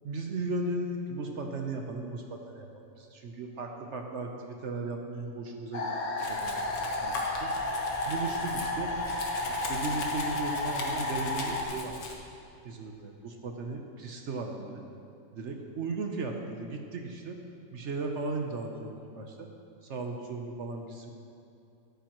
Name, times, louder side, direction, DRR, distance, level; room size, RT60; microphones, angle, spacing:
voice 1, 0.0-6.6 7.0-7.5 8.1-8.9 9.5-12.0 12.6-14.8 15.3-17.4 17.7-19.5 19.8-21.1, right 3 dB, 55° right, 3 dB, 0.9 m, -36 dB
sound 1, 5.7-11.6, left 2 dB, 60° left, 1.5 m, -32 dB
Domestic sounds home sounds, 6.2-12.1, left 3 dB, 85° left, 1.8 m, -41 dB
13.5 x 10.5 x 3.1 m, 2.6 s
omnidirectional pair, 1.8 m